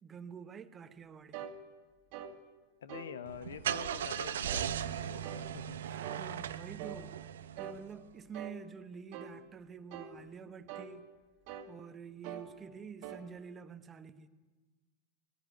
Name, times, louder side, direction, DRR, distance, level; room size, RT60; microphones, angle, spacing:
voice 1, 0.0-1.5 5.8-11.1 11.7-14.3, right 6 dB, 20° right, 11 dB, 1.1 m, -48 dB
sound 1, 1.3-1.6 2.1-2.3 2.9-3.1 3.7-3.9 4.4-4.7 5.2-5.5 6.0-6.3 6.8-7.0 7.6-7.8 8.3-8.6 9.1-9.3 9.9-10.2 10.7-10.9 11.5-11.7 12.2-12.5 13.0-13.2, right 8 dB, 45° right, 1.9 m, -44 dB
voice 2, 2.8-5.8, left 7 dB, 65° left, 13 dB, 1.2 m, -46 dB
Car / Engine starting, 3.3-7.9, right 9 dB, 60° right, 0.9 m, -38 dB
20.0 x 15.5 x 9.7 m, 1.3 s
figure-of-eight pair, 90°, 0 cm